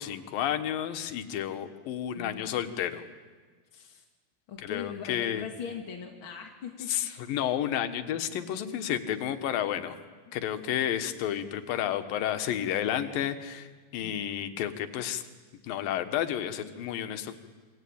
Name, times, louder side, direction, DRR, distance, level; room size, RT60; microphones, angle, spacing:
voice 1, 0.0-3.0 4.6-5.5 6.9-10.0 10.3-15.2 15.6-17.3, left 10 dB, 70° left, 9 dB, 2.9 m, -31 dB
voice 2, 2.1-2.5 3.7-4.0 4.5-7.1 14.0-14.2, left 7 dB, 45° left, 2 dB, 2.1 m, -41 dB
27.5 x 23.5 x 8.7 m, 1.4 s
omnidirectional pair, 4.5 m